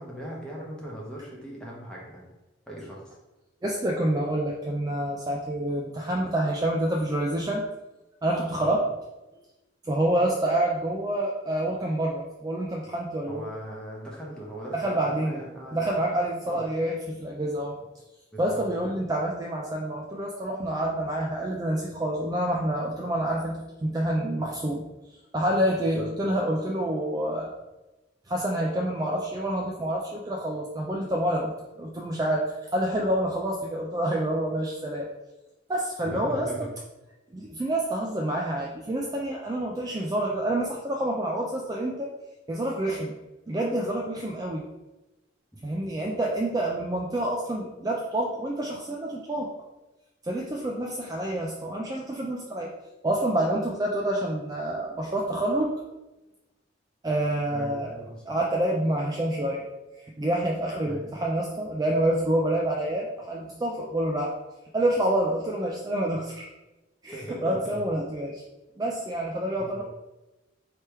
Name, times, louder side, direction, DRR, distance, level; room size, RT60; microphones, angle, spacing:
voice 1, 0.0-2.2 2.7-3.1 8.6-8.7 13.3-15.8 16.4-16.6 18.3-18.9 25.9-26.1 36.0-36.7 57.5-58.3 60.8-61.1 67.1-67.8 68.9-69.0 69.6-69.8, right 1 dB, 5° left, -4 dB, 0.9 m, -39 dB
voice 2, 3.6-7.7 8.2-8.9 9.8-13.5 14.7-15.4 15.7-17.7 18.4-24.8 25.3-27.5 28.3-32.5 32.7-35.1 35.7-36.5 37.3-42.1 42.5-43.1 43.5-44.7 45.6-49.5 50.2-52.7 53.0-55.7 57.0-57.9 58.3-59.7 60.2-64.3 64.7-66.5 67.0-68.4 68.8-69.8, right 1 dB, 20° right, -1 dB, 0.3 m, -27 dB
3.4 x 2.9 x 4.5 m, 1.0 s
head